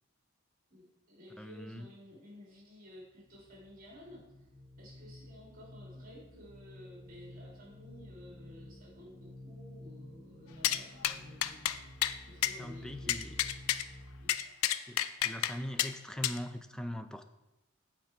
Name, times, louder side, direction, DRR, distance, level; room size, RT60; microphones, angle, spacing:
voice 1, 0.7-4.2 4.8-11.7 12.2-13.6 14.2-14.4, left 1 dB, 45° right, -2 dB, 2.7 m, -53 dB
voice 2, 1.4-1.9 12.6-13.4 14.8-17.2, equal, 5° left, 8 dB, 0.4 m, -41 dB
sound 1, 3.0-14.2, left 1 dB, 35° left, 1.9 m, -51 dB
sound 2, 10.6-10.8 11.0-11.2 11.4-11.8 12.0-12.2 12.4-12.5 13.1-13.8 14.3-15.5 15.8-15.9 16.2-16.4, left 12 dB, 85° left, 0.4 m, -30 dB
8.3 x 4.5 x 5.9 m, 0.98 s
head